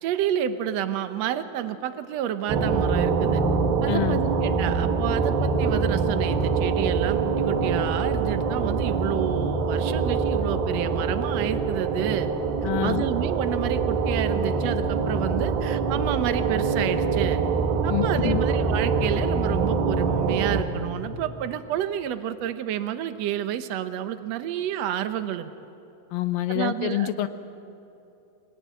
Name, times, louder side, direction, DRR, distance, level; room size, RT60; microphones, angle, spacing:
voice 1, 0.0-3.4 3.8-12.3 12.6-17.4 17.8-25.5 26.5-27.1, right 11 dB, 75° right, 10 dB, 1.6 m, -30 dB
sound 1, 2.5-20.6, right 4 dB, 90° right, 3.6 m, -24 dB
voice 2, 3.9-4.2 12.6-13.1 17.9-18.4 26.1-27.3, left 14 dB, 85° left, 10 dB, 2.8 m, -26 dB
26.0 x 19.0 x 9.4 m, 2.8 s
omnidirectional pair, 4.1 m